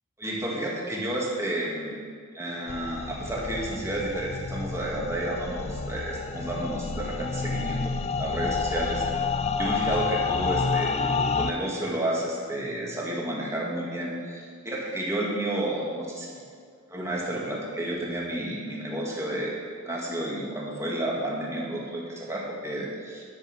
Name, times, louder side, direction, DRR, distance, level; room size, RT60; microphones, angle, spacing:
voice 1, 0.2-2.0 2.3-7.9 8.2-9.0 9.6-16.3 16.9-19.5 19.8-23.2, right 1 dB, 15° right, -4 dB, 2.2 m, -31 dB
sound 1, 2.7-11.5, left 5 dB, 30° left, 0.4 m, -29 dB
12.0 x 6.6 x 6.1 m, 2.1 s
head